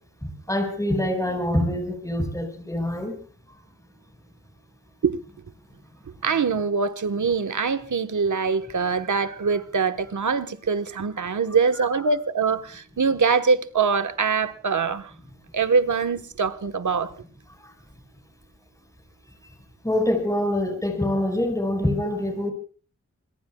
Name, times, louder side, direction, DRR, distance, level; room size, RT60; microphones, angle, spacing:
voice 1, 0.2-3.2 3.5-3.6 11.7-11.9 17.6-17.7 19.8-22.5, left 1 dB, 10° left, 5.1 m, -25 dB
voice 2, 6.2-15.1 15.5-17.1, right 5 dB, 75° right, 1.3 m, -23 dB
26.0 x 22.0 x 2.3 m
cardioid pair, 45°, 30 cm